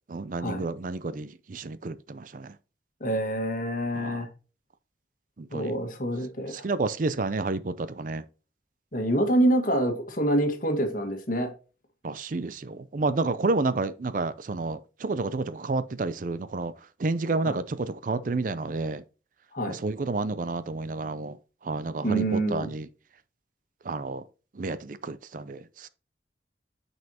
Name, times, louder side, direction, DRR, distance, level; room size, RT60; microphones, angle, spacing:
voice 1, 0.1-2.6 3.9-4.3 5.4-5.8 6.5-8.2 12.0-16.7 17.0-19.0 19.7-21.4 21.6-22.9 23.8-24.2 24.5-25.9, right 3 dB, 50° right, 0.5 m, -30 dB
voice 2, 3.0-4.3 5.5-6.6 8.9-11.5 17.4-17.5 19.5-19.8 22.0-22.7, right 1 dB, 50° left, 1.6 m, -26 dB
9.2 x 5.4 x 2.9 m
head